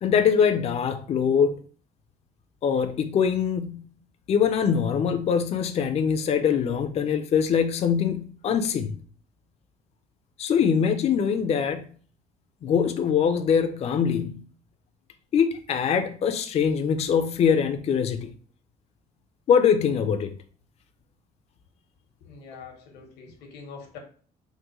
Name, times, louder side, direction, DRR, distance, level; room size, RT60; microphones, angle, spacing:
voice 1, 0.0-1.6 2.6-3.9 4.3-9.0 10.4-11.9 12.6-14.4 15.3-18.3 19.5-20.4, left 7 dB, 40° left, 0.4 m, -23 dB
voice 2, 22.2-24.0, left 5 dB, 90° left, 0.9 m, -44 dB
3.7 x 2.1 x 2.9 m
cardioid pair, 110°, 17 cm